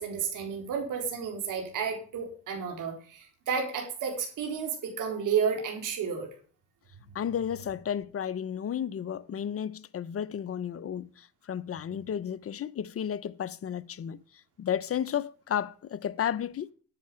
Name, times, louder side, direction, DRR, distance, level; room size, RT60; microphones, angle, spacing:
voice 1, 0.0-6.3, right 6 dB, 70° right, 4.1 m, -31 dB
voice 2, 7.1-14.2 14.6-16.7, left 9 dB, 45° left, 0.8 m, -33 dB
10.5 x 9.7 x 5.0 m
cardioid pair, 80°, 33 cm